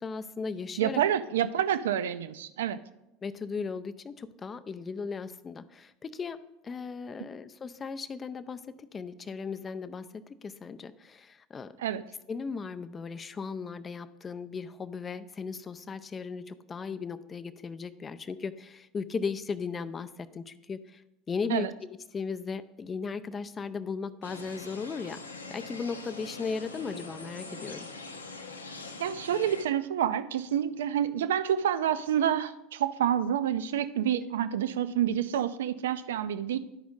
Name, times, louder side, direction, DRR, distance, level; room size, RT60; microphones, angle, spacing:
voice 1, 0.0-1.0 3.2-11.7 12.3-21.0 21.3-27.9, left 5 dB, 25° left, 11 dB, 0.4 m, -37 dB
voice 2, 0.8-2.8 11.8-12.0 21.5-21.7 29.0-36.6, right 10 dB, 65° right, 13 dB, 0.4 m, -28 dB
sound 1, 24.2-29.6, left 3 dB, 80° left, 0.6 m, -43 dB
11.5 x 5.0 x 3.8 m, 0.90 s
figure-of-eight pair, 75°, 0 cm